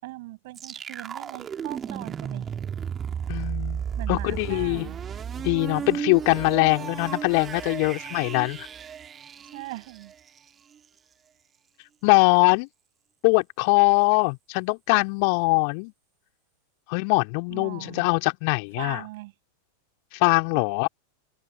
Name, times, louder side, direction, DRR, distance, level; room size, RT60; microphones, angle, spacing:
voice 1, 0.0-2.5 4.0-5.0 9.5-10.1 17.5-18.1 18.8-19.3 20.5-20.6, right 20 dB, 50° right, 6.9 m, -40 dB
sound 1, 0.6-10.4, right 8 dB, 25° right, 2.0 m, -34 dB
voice 2, 3.3-4.9 5.4-8.7 12.0-12.7 13.2-15.9 16.9-19.0 20.1-20.9, left 38 dB, 45° left, 3.0 m, -22 dB
open air
figure-of-eight pair, 90°, 0 cm